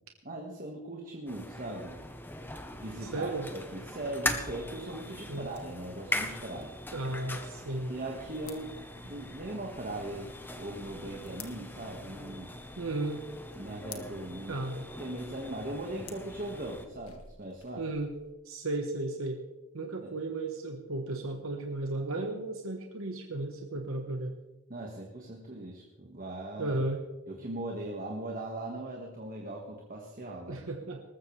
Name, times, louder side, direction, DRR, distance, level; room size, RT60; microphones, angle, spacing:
voice 1, 0.2-2.0 2.7-6.7 7.9-10.3 10.6-12.5 13.6-17.8 20.0-20.1 24.7-26.7 27.3-30.6, right 1 dB, 40° right, 0 dB, 1.7 m, -39 dB
sound 1, 1.3-16.9, left 1 dB, 10° left, 1.0 m, -41 dB
voice 2, 3.0-3.5 5.3-5.5 6.9-7.9 12.8-13.2 14.5-14.8 17.8-18.1 18.4-19.4 19.7-24.4 26.6-27.0 30.5-31.0, right 2 dB, 65° right, 3 dB, 1.2 m, -34 dB
sound 2, 5.0-18.3, left 7 dB, 75° left, 1.8 m, -55 dB
19.5 x 14.5 x 3.3 m, 1.1 s
head